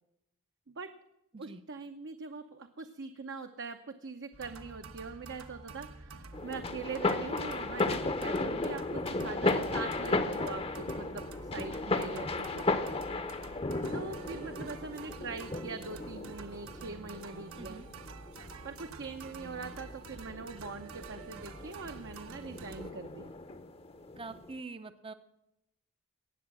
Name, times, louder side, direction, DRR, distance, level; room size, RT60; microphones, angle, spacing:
voice 1, 1.4-11.3 11.5-12.8 13.9-17.8 18.6-23.3, right 4 dB, 55° right, 6 dB, 0.8 m, -42 dB
sound 1, 4.3-22.9, right 3 dB, 75° right, 1.1 m, -49 dB
sound 2, 6.3-24.6, left 2 dB, 25° left, 0.8 m, -35 dB
voice 2, 24.2-25.1, right 3 dB, 25° right, 11 dB, 0.6 m, -45 dB
18.5 x 7.3 x 6.1 m, 0.84 s
head